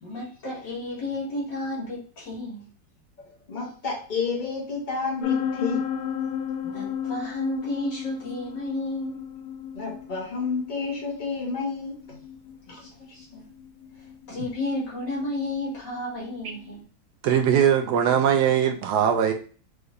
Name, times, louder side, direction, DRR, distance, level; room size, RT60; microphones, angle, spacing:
voice 1, 0.0-2.7 6.6-9.2 12.7-13.4 14.0-16.8, left 1 dB, 60° left, 2.6 m, -32 dB
voice 2, 3.2-5.8 9.7-12.2 12.7-12.8, left 4 dB, 30° left, 1.0 m, -30 dB
sound 1, 5.2-16.7, left 8 dB, 80° left, 1.4 m, -34 dB
voice 3, 17.2-19.3, right 8 dB, 70° right, 1.0 m, -20 dB
4.9 x 3.3 x 2.6 m
omnidirectional pair, 2.2 m